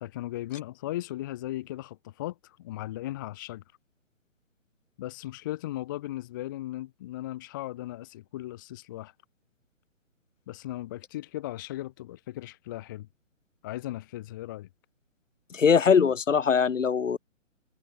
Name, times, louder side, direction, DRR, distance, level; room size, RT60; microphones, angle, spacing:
voice 1, 0.0-3.6 5.0-9.1 10.5-13.1 13.6-14.7, left 15 dB, 15° left, 0.7 m, -37 dB
voice 2, 15.5-17.2, left 6 dB, 70° left, 2.4 m, -21 dB
hypercardioid pair, 155°, 39 cm